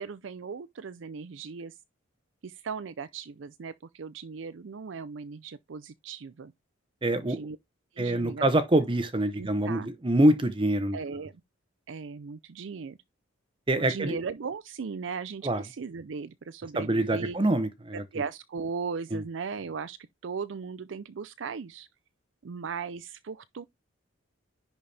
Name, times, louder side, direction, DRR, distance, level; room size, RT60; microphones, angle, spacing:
voice 1, 0.0-1.8 2.4-6.5 7.2-7.6 7.9-8.5 9.3-9.9 10.9-11.3 11.9-13.0 13.7-17.4 17.9-20.0 20.2-21.9 22.4-23.6, right 5 dB, 70° right, 0.5 m, -37 dB
voice 2, 7.0-7.4 8.0-11.0 13.7-14.2 15.4-15.6 16.8-18.0 19.1-19.2, right 1 dB, 25° right, 0.7 m, -25 dB
10.5 x 4.2 x 3.3 m
head